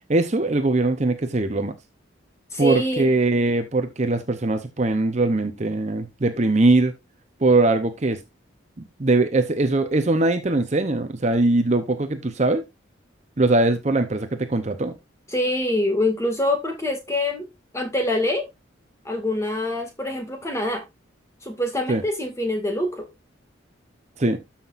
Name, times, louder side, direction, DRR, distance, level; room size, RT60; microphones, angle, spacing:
voice 1, 0.1-1.7 2.6-6.9 7.4-8.2 9.0-12.6 13.4-14.9 21.9-22.0 24.2-24.4, right 2 dB, 35° right, 0.8 m, -21 dB
voice 2, 2.5-3.1 15.3-17.5 17.7-18.5 19.1-20.8 21.4-23.1, left 1 dB, 15° left, 2.0 m, -25 dB
13.0 x 5.9 x 2.5 m
head